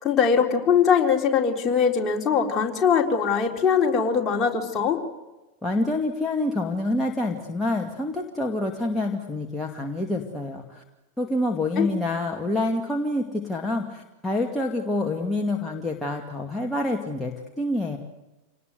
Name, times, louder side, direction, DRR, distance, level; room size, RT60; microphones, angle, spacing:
voice 1, 0.0-5.0 11.8-11.9, left 6 dB, 25° left, 1 dB, 3.9 m, -21 dB
voice 2, 5.6-10.8 11.2-18.0, left 2 dB, 5° left, 0 dB, 2.4 m, -27 dB
28.0 x 19.5 x 8.0 m, 1.1 s
figure-of-eight pair, 90°, 0 cm